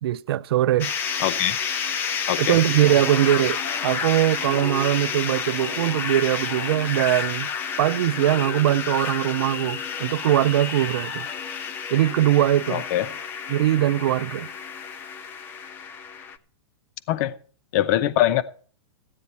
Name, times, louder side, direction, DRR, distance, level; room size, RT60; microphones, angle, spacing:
voice 1, 0.0-0.9 2.4-7.5 7.8-11.3 11.9-12.8 13.5-14.5, right 13 dB, 60° right, 0.5 m, -21 dB
sound 1, 0.8-16.4, left 6 dB, 15° left, 0.4 m, -30 dB
voice 2, 1.2-1.6 2.3-2.6 12.7-13.1 17.1-17.3 17.7-18.4, left 13 dB, 40° left, 0.7 m, -22 dB
15.0 x 9.5 x 4.2 m
hypercardioid pair, 160°, 15 cm